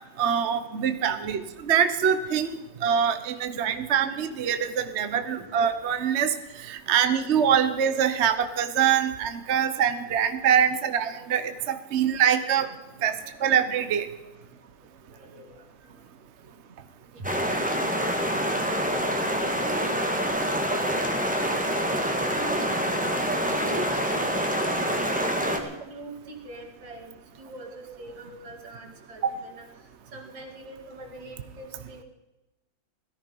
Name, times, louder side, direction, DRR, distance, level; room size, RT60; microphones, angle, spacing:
voice 1, 0.2-6.3 6.6-12.7 13.0-14.1 29.2-29.4, right 8 dB, 45° right, 10 dB, 1.0 m, -24 dB
voice 2, 12.9-13.2 14.4-14.5 15.1-15.9 17.1-17.4 18.0-18.9 19.4-23.0 23.5-29.6 30.1-32.0, right 2 dB, 75° right, 2 dB, 3.1 m, -42 dB
sound 1, 17.2-25.6, equal, 5° right, 1.5 m, -26 dB
17.5 x 13.5 x 5.4 m, 1.0 s
omnidirectional pair, 2.1 m